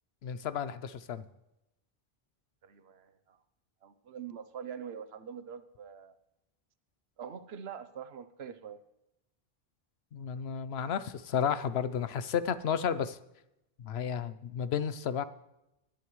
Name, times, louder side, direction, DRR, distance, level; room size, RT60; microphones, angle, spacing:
voice 1, 0.2-1.3 10.1-13.2 13.8-15.2, left 7 dB, 85° left, 14 dB, 0.9 m, -32 dB
voice 2, 2.6-3.4 3.8-6.2 7.2-8.8, right 7 dB, 85° right, 11 dB, 1.0 m, -44 dB
20.5 x 10.5 x 3.1 m, 0.88 s
omnidirectional pair, 1.0 m